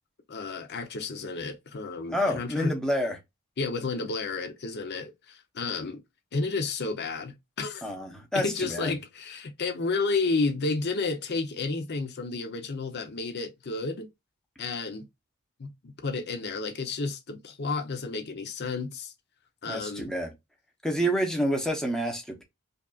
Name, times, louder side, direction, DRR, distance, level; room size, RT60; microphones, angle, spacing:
voice 1, 0.3-2.7 3.6-6.0 6.3-7.9 8.3-14.1 14.6-15.1 15.6-19.1 19.6-20.1, left 3 dB, 50° left, 0.6 m, -31 dB
voice 2, 2.1-3.2 7.8-8.9 19.7-20.3 20.8-22.4, equal, 5° left, 0.8 m, -28 dB
5.2 x 2.5 x 2.3 m
head